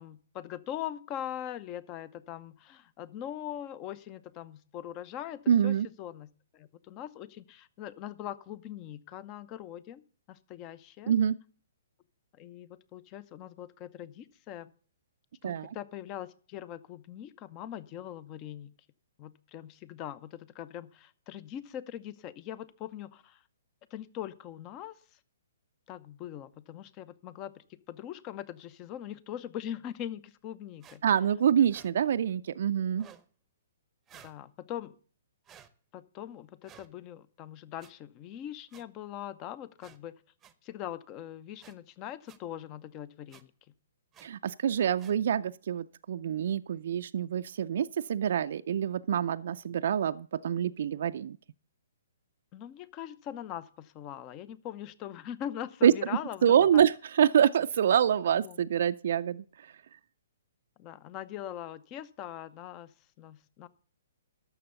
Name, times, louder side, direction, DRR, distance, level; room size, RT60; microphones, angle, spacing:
voice 1, 0.0-6.3 6.5-11.1 12.3-14.7 15.4-18.7 19.2-23.4 23.9-25.2 25.9-31.0 34.1-34.9 35.9-40.2 40.6-43.5 52.5-56.8 58.4-58.6 60.8-63.7, left 11 dB, 30° left, 0.8 m, -42 dB
voice 2, 5.5-5.9 11.1-11.4 15.4-15.8 31.0-33.1 44.2-51.4 55.8-55.9 56.4-59.4, right 9 dB, 60° right, 0.4 m, -26 dB
sound 1, 30.8-31.0 31.7-31.9 32.9-33.3 34.1-34.4 35.4-35.7 36.6-36.9 37.8-37.9 38.7-38.8 39.8-40.0 40.4-40.5 41.6-41.7 42.3-42.4 43.3-43.4 44.1-44.3 45.0-45.2, right 9 dB, 15° right, 0.8 m, -54 dB
12.0 x 7.1 x 6.9 m
hypercardioid pair, 140°, 0 cm